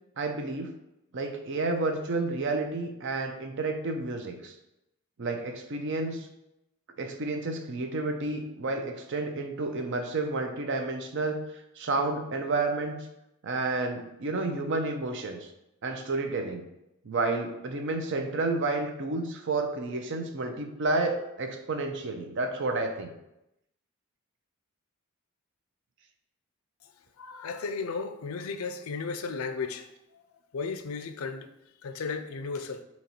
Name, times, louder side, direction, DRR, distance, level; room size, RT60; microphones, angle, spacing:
voice 1, 0.2-0.7 1.1-4.5 5.2-6.3 7.0-11.4 11.8-13.0 13.4-15.5 15.8-16.6 17.0-23.1, right 3 dB, 55° right, 0.5 m, -30 dB
voice 2, 27.2-30.2 30.5-31.5 31.8-32.8, left 4 dB, 70° left, 0.4 m, -35 dB
4.0 x 2.9 x 4.3 m
head